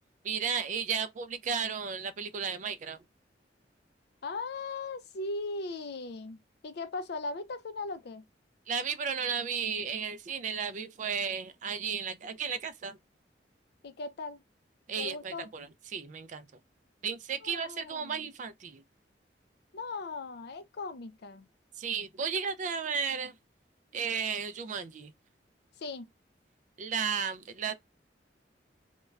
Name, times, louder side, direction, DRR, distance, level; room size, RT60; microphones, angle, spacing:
voice 1, 0.2-3.0 8.7-13.0 14.9-15.7 15.9-16.4 17.0-18.8 21.8-23.3 23.9-25.1 26.8-27.7, right 6 dB, 45° right, 0.3 m, -34 dB
voice 2, 4.2-8.3 13.8-14.4 15.0-15.5 17.4-18.3 19.7-21.5 25.8-26.1, left 3 dB, 65° left, 0.5 m, -38 dB
2.3 x 2.2 x 3.1 m
head